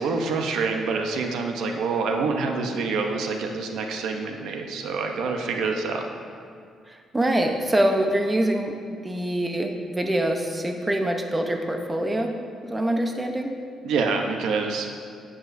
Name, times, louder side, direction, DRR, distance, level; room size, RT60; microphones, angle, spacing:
voice 1, 0.0-6.1 13.8-14.9, right 4 dB, 85° right, 3 dB, 0.8 m, -26 dB
voice 2, 6.9-8.7 9.0-12.3 12.6-13.5, right 1 dB, 15° right, 3 dB, 0.8 m, -24 dB
10.5 x 8.8 x 2.7 m, 2.3 s
cardioid pair, 90°, 0 cm